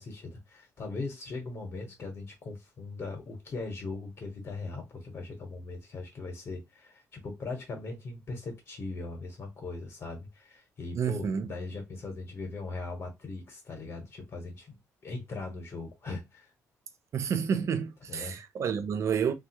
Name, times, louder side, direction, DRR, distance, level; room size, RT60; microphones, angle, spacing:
voice 1, 0.0-14.8 15.0-16.5 18.1-18.4, left 3 dB, 45° left, 1.0 m, -39 dB
voice 2, 10.9-11.5 17.1-19.3, right 7 dB, 50° right, 0.5 m, -29 dB
3.1 x 2.4 x 2.9 m
cardioid pair, 125°, 6 cm